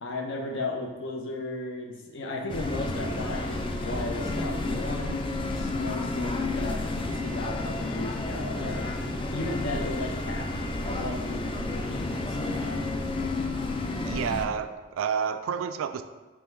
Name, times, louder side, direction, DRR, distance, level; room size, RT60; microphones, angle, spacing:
voice 1, 0.0-8.9 9.3-12.9, left 2 dB, 65° left, 1 dB, 0.7 m, -35 dB
sound 1, 2.5-14.5, left 2 dB, 25° left, 0.3 m, -31 dB
voice 2, 14.1-16.0, right 7 dB, 75° right, 9 dB, 0.3 m, -29 dB
3.5 x 3.1 x 4.5 m, 1.2 s
head